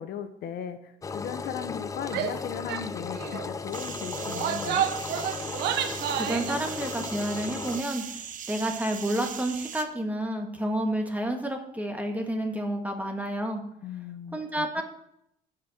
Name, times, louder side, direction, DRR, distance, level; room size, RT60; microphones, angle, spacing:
voice 1, 0.0-4.9 13.8-14.8, left 8 dB, 65° left, 10 dB, 0.9 m, -37 dB
Engine, 1.0-7.8, left 5 dB, 20° left, 0.4 m, -36 dB
Female speech woman speaking / Yell, 2.1-2.4 2.7-2.9 3.1-3.5 4.2-6.6, right 9 dB, 80° right, 1.0 m, -30 dB
sound 1, 3.7-9.8, right 8 dB, 50° right, 1.0 m, -39 dB
voice 2, 6.1-13.6 14.3-14.8, right 1 dB, 10° right, 3 dB, 1.7 m, -30 dB
15.0 x 5.3 x 4.3 m, 0.75 s
cardioid pair, 110°, 17 cm